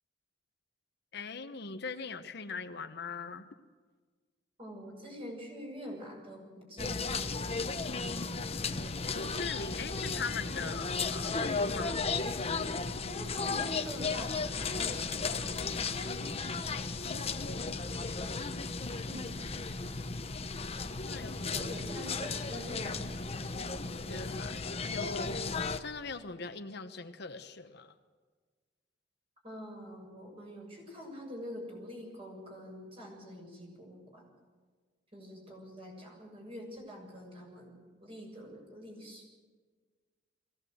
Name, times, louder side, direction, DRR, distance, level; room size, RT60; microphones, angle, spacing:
voice 1, 1.1-3.5 9.1-12.0 17.0-18.2 21.0-21.7 24.1-27.9, left 4 dB, 65° left, 8 dB, 1.1 m, -41 dB
voice 2, 4.6-7.1 13.0-16.2 19.0-19.4 21.5-23.1 29.4-34.3 35.1-39.2, equal, 30° right, 0 dB, 7.0 m, -45 dB
sound 1, 6.8-25.8, left 4 dB, 35° left, 1.0 m, -35 dB
22.5 x 17.0 x 7.9 m, 1.5 s
head